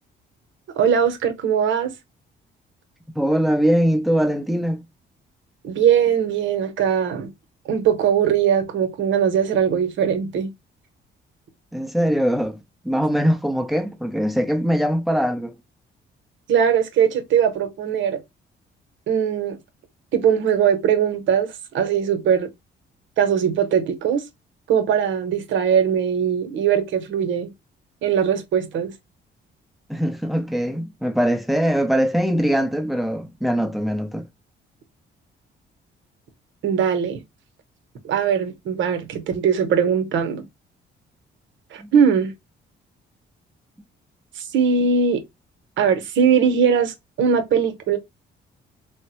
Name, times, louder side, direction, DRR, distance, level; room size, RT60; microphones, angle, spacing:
voice 1, 0.8-1.9 5.6-7.3 7.7-10.5 16.5-18.2 19.1-19.6 20.1-22.5 23.2-24.2 24.7-27.5 28.0-28.9 36.6-37.2 38.0-40.4 41.7-42.3 44.4-45.2 45.8-48.0, right 7 dB, 75° right, 0.8 m, -20 dB
voice 2, 3.2-4.8 11.7-12.6 12.8-15.5 29.9-34.3 41.8-41.9, equal, ahead, 0.6 m, -22 dB
3.4 x 2.1 x 2.9 m
cardioid pair, 90°, 20 cm